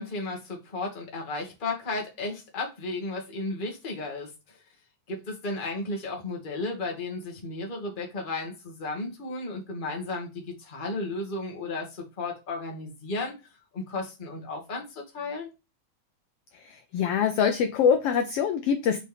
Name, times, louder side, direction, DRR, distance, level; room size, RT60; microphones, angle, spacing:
voice 1, 0.0-4.6 5.1-13.3 13.7-15.5, left 2 dB, 20° left, 1.4 m, -34 dB
voice 2, 16.6-19.0, left 7 dB, 75° left, 1.4 m, -24 dB
6.3 x 4.5 x 3.4 m
omnidirectional pair, 3.4 m